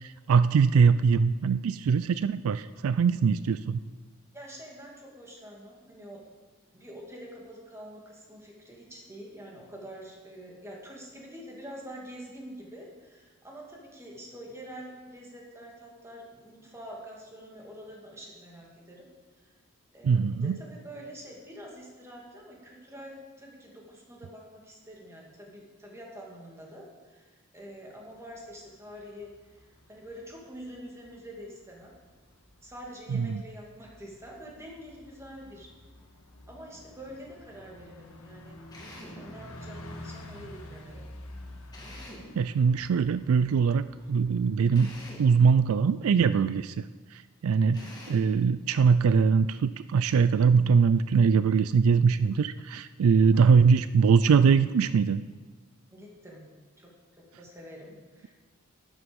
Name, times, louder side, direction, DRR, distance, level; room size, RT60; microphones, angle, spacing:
voice 1, 0.0-3.8 20.0-20.6 33.1-33.4 42.4-44.9 45.2-46.8 47.4-55.2, right 5 dB, 75° right, 14 dB, 0.4 m, -22 dB
voice 2, 4.3-6.2 6.7-19.1 19.4-19.5 19.9-31.9 32.6-35.7 36.5-38.6 39.2-41.0 53.3-53.6 55.9-56.5 56.8-58.3, equal, 15° right, -2 dB, 2.4 m, -46 dB
Bus, 28.1-45.1, left 1 dB, 80° left, 1.7 m, -49 dB
Drill, 38.7-39.3 41.7-42.4 44.7-45.3 47.7-48.3, left 1 dB, 20° left, 2.7 m, -45 dB
12.5 x 9.9 x 5.3 m, 1.4 s
head